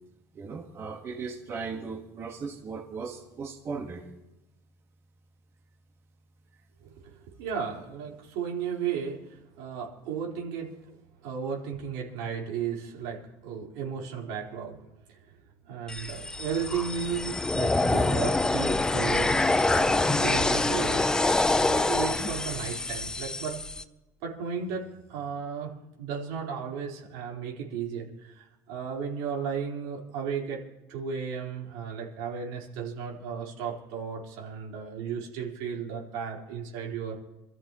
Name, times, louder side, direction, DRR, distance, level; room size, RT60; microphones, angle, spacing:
voice 1, 0.3-4.1, right 5 dB, 35° right, 2 dB, 1.5 m, -37 dB
voice 2, 6.8-14.8 15.1-15.3 15.6-19.4 19.7-21.0 21.6-23.6 24.2-25.7 26.0-30.6 30.9-37.1, right 7 dB, 85° right, -2 dB, 4.3 m, -34 dB
sound 1, 15.9-23.8, left 2 dB, 10° left, 0.6 m, -26 dB
27.5 x 14.0 x 3.1 m, 1.0 s
cardioid pair, 135°, 8 cm